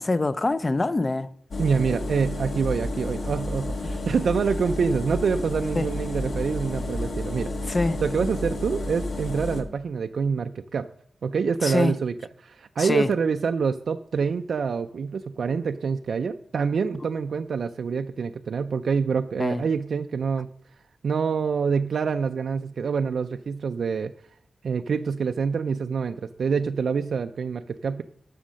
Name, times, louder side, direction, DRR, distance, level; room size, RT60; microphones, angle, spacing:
voice 1, 0.0-1.3 3.8-3.9 5.8-5.9 7.7-8.0 11.6-12.0 12.8-13.1 19.4-19.6, left 2 dB, 25° left, 0.4 m, -24 dB
sound 1, 1.5-9.6, left 2 dB, 65° left, 1.4 m, -31 dB
voice 2, 1.6-10.9 11.2-12.1 12.4-20.5 21.0-24.1 24.6-28.0, right 5 dB, 65° right, 0.3 m, -26 dB
11.5 x 6.4 x 6.2 m
wide cardioid pair, 150°, 0 cm